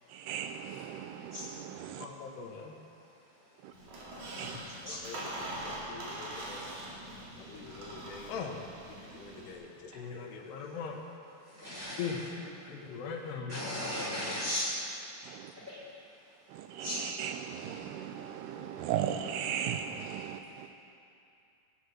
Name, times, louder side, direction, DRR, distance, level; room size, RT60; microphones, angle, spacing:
voice 1, 0.1-2.1 3.6-3.7 4.3-4.6 15.2-15.5 16.5-20.7, right 9 dB, 80° right, 7 dB, 2.5 m, -37 dB
voice 2, 2.0-2.7 4.4-5.3 5.6-6.7 7.4-8.6 9.1-11.1 12.0-12.2 12.6-13.7 14.0-14.2, left 6 dB, 80° left, 1 dB, 3.3 m, -41 dB
Squeak, 3.7-9.5, right 1 dB, 50° right, 3.4 m, -43 dB
voice 3, 11.6-12.4 13.5-14.7 15.7-15.8 16.8-17.0, left 1 dB, 15° right, -7 dB, 4.6 m, -36 dB
19.5 x 9.8 x 6.5 m, 2.6 s
omnidirectional pair, 4.8 m